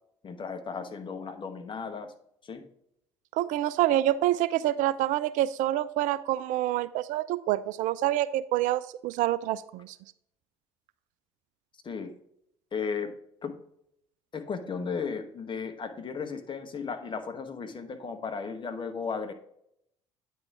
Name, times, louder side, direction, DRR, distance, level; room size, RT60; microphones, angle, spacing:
voice 1, 0.2-2.1 2.4-2.6 11.8-12.1 12.7-13.1 13.4-13.5 14.3-19.3, left 5 dB, 30° left, 7 dB, 1.1 m, -35 dB
voice 2, 3.3-10.0, right 14 dB, 60° right, 15 dB, 0.4 m, -27 dB
9.1 x 3.4 x 4.7 m, 0.73 s
hypercardioid pair, 55°, 15 cm